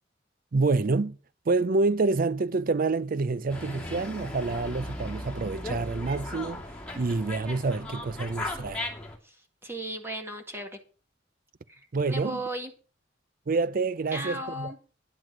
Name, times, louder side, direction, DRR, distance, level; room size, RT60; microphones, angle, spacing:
voice 1, 0.5-1.2 1.5-6.6 7.0-8.8 11.9-12.4 13.5-14.7, right 3 dB, 45° right, 0.5 m, -27 dB
Dog, 3.5-9.2, left 1 dB, 5° left, 2.5 m, -37 dB
voice 2, 9.6-10.8 11.7-12.7 14.1-14.8, right 1 dB, 15° right, 1.9 m, -36 dB
11.0 x 7.8 x 6.2 m
head